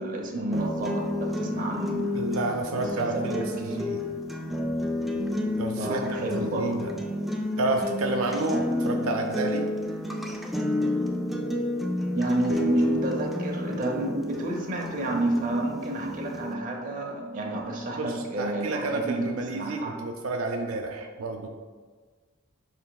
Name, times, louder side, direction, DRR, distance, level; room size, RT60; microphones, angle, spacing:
voice 1, 0.0-2.0 2.7-4.1 5.8-6.9 12.1-20.0, right 2 dB, 40° right, 0 dB, 0.6 m, -30 dB
sound 1, 0.5-16.5, left 1 dB, ahead, 0.3 m, -31 dB
voice 2, 2.1-4.0 5.6-6.9 7.6-9.7 18.0-21.5, right 2 dB, 80° right, 3 dB, 0.4 m, -30 dB
6.3 x 3.2 x 2.3 m, 1.5 s
head